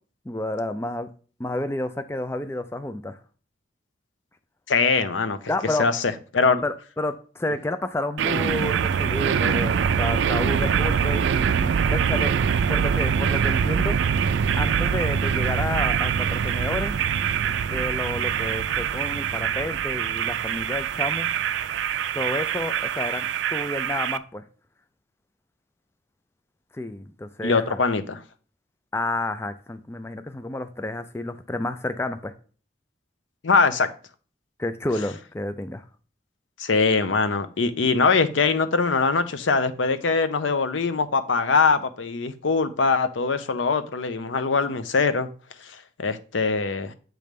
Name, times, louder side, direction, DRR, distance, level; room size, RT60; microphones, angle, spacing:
voice 1, 0.3-1.1 1.4-3.2 5.5-5.9 6.6-12.3 12.7-14.0 14.6-17.0 17.7-21.3 22.1-24.4 26.7-27.8 28.9-32.3 34.6-35.8, left 2 dB, 15° left, 0.3 m, -30 dB
voice 2, 4.7-5.4 5.8-6.6 27.4-28.2 33.4-33.9 36.6-45.3 45.6-46.9, left 4 dB, 80° left, 0.6 m, -22 dB
sound 1, 8.2-24.2, right 7 dB, 75° right, 0.4 m, -24 dB
7.6 x 3.2 x 5.2 m
head